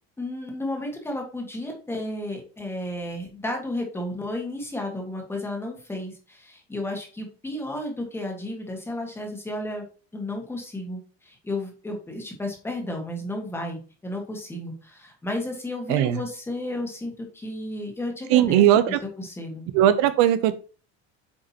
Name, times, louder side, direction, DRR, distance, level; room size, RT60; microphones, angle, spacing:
voice 1, 0.2-18.6 18.9-19.6, left 1 dB, 5° left, 1 dB, 1.6 m, -33 dB
voice 2, 15.9-16.2 18.3-19.0 19.7-20.5, right 12 dB, 65° right, 12 dB, 0.7 m, -18 dB
8.4 x 5.1 x 2.9 m, 0.37 s
cardioid pair, 170°, 31 cm